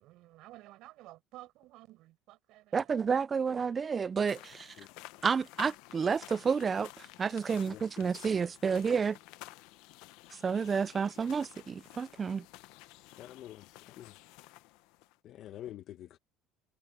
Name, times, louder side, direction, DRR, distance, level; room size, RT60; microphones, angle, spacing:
voice 1, 0.0-2.9, right 17 dB, 65° right, 5.9 m, -53 dB
voice 2, 2.7-4.7 5.2-6.9 7.2-9.2 10.4-12.4, right 6 dB, 25° right, 0.4 m, -30 dB
sound 1, 4.3-15.2, left 19 dB, 75° left, 0.9 m, -52 dB
voice 3, 7.5-8.2 13.2-14.2 15.2-16.2, left 12 dB, 55° left, 1.2 m, -48 dB
cardioid pair, 125°, 0 cm